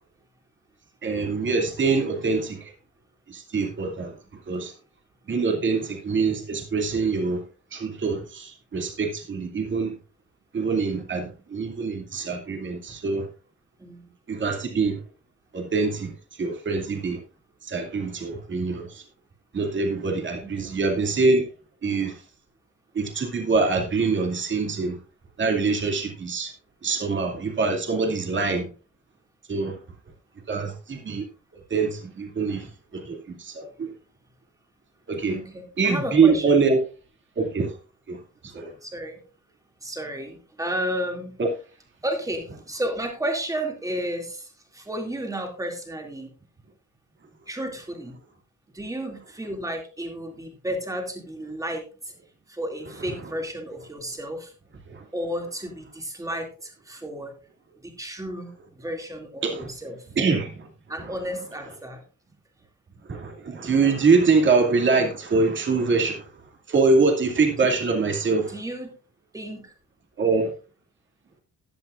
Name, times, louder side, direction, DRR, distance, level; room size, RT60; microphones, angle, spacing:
voice 1, 1.0-2.7 3.3-4.2 4.5-4.7 5.3-7.4 7.7-9.9 10.5-13.3 14.3-15.0 15.5-17.2 17.6-19.0 19.5-21.5 21.8-22.2 22.9-25.0 25.4-26.5 26.8-28.7 29.5-29.8 30.5-31.3 31.5-33.9 35.1-35.4 35.8-36.8 37.4-37.8 38.1-38.2 38.4-38.7 54.9-55.1 59.4-59.7 60.2-60.7 61.0-61.1 63.1-66.3 66.7-68.5 70.2-70.5, right 4 dB, 40° right, 2.4 m, -24 dB
voice 2, 13.8-14.1 20.4-20.7 28.4-28.7 35.3-36.6 38.8-39.2 39.8-41.3 42.0-46.3 47.5-48.2 48.7-52.1 52.5-54.5 55.1-57.3 57.8-60.0 60.9-62.0 68.5-68.9 69.3-69.7, equal, 10° right, 2.5 m, -32 dB
15.5 x 11.0 x 2.5 m
wide cardioid pair, 165°, 30 cm